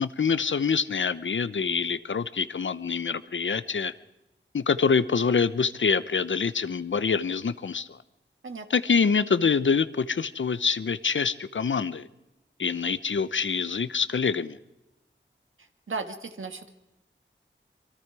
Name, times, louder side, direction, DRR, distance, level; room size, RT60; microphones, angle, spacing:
voice 1, 0.0-3.9 4.5-8.0 8.7-12.1 12.6-14.6, left 5 dB, 70° left, 14 dB, 0.9 m, -25 dB
voice 2, 15.9-16.7, right 4 dB, 80° right, 6 dB, 1.9 m, -35 dB
26.0 x 23.5 x 4.8 m, 0.95 s
wide cardioid pair, 50°, 20 cm